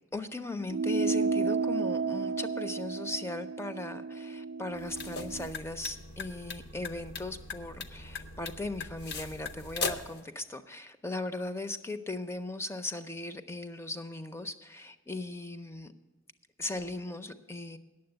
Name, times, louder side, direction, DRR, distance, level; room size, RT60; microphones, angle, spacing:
voice 1, 0.0-15.9 16.6-17.8, left 2 dB, 10° left, 10 dB, 0.5 m, -38 dB
sound 1, 0.7-5.5, right 4 dB, 70° right, 0.3 m, -32 dB
sound 2, 4.7-10.2, left 4 dB, 50° left, 0.7 m, -39 dB
9.5 x 7.4 x 8.8 m, 1.2 s
head